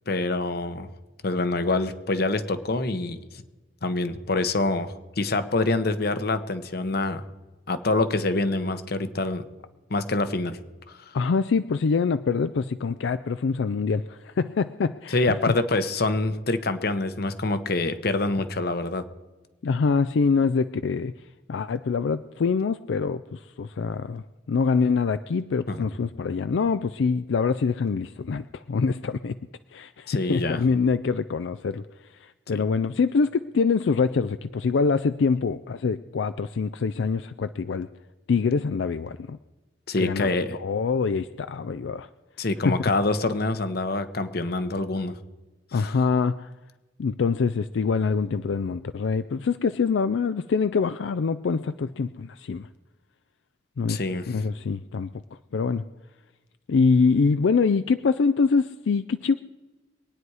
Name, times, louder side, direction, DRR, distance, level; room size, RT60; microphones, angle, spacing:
voice 1, 0.1-0.9 1.2-3.2 3.8-7.2 7.7-9.4 9.9-10.6 10.9-11.0 15.1-19.0 25.7-25.8 30.1-30.6 39.9-40.6 42.4-45.1 45.7-46.0 53.9-54.2, left 2 dB, 60° left, 11 dB, 1.0 m, -26 dB
voice 2, 11.1-15.4 19.6-21.1 21.5-29.4 29.7-31.8 32.2-37.9 38.3-39.4 40.0-40.3 40.6-42.1 42.6-42.8 45.7-46.5 47.0-52.7 53.8-54.0 54.3-55.1 55.5-55.8 56.7-59.3, left 5 dB, 85° left, 12 dB, 0.4 m, -24 dB
23.5 x 9.5 x 4.8 m, 1.2 s
head